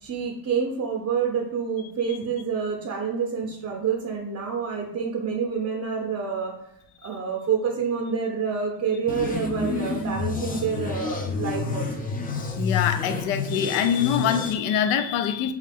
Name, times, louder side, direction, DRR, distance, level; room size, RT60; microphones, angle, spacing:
voice 1, 0.0-6.6 7.0-11.9, right 6 dB, 35° right, -1 dB, 0.6 m, -28 dB
sound 1, 9.1-14.5, left 4 dB, 20° left, 0.4 m, -29 dB
voice 2, 12.6-15.5, left 8 dB, 85° left, 9 dB, 0.5 m, -24 dB
3.2 x 2.4 x 3.4 m, 0.77 s
cardioid pair, 90°, 47 cm